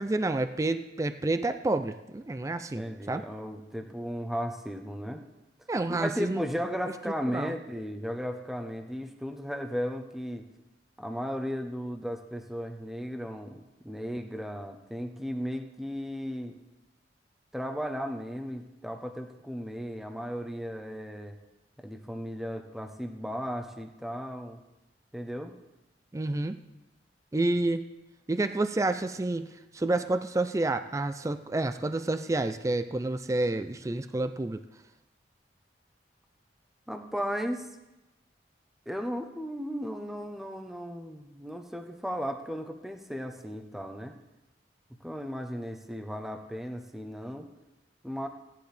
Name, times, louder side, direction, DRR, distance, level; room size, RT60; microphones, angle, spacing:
voice 1, 0.0-3.2 5.7-6.4 7.2-7.5 26.1-26.6 27.3-27.9 28.3-34.6, right 2 dB, 20° right, 10 dB, 0.4 m, -29 dB
voice 2, 2.7-5.2 5.9-10.4 11.0-16.6 17.5-21.4 21.8-24.6 25.1-25.5 36.9-37.7 38.9-44.1 45.0-47.5 48.0-48.3, equal, ahead, 4 dB, 0.8 m, -35 dB
17.0 x 10.5 x 3.4 m, 1.0 s
head